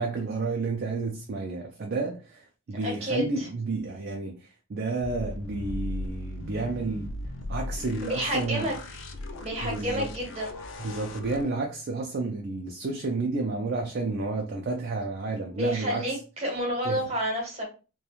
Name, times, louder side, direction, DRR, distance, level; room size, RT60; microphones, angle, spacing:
voice 1, 0.0-7.1 7.5-8.7 9.6-10.1 10.8-16.2 16.8-17.0, right 3 dB, 45° right, 0.3 m, -31 dB
voice 2, 2.8-3.5 8.0-8.7 9.4-10.6 15.5-17.7, equal, 30° right, 0.9 m, -30 dB
sound 1, 5.0-11.4, left 2 dB, 60° left, 0.3 m, -37 dB
2.9 x 2.2 x 2.3 m
head